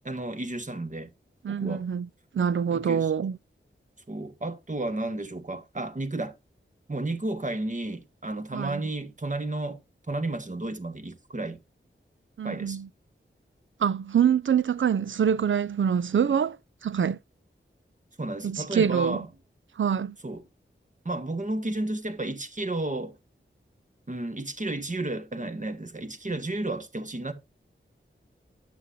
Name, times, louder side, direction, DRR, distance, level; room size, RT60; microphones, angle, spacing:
voice 1, 0.0-1.1 1.5-1.8 2.7-3.1 4.1-6.3 6.9-9.8 10.1-11.6 12.4-12.8 18.2-19.3 20.2-20.4 21.0-23.2 24.1-27.3, right 2 dB, 40° right, 1.4 m, -32 dB
voice 2, 1.4-2.1 2.3-3.4 8.5-8.8 12.4-12.9 13.8-16.6 16.8-17.2 18.4-19.2 19.8-20.1, right 7 dB, 70° right, 0.4 m, -25 dB
9.3 x 7.8 x 2.6 m
wide cardioid pair, 75°, 21 cm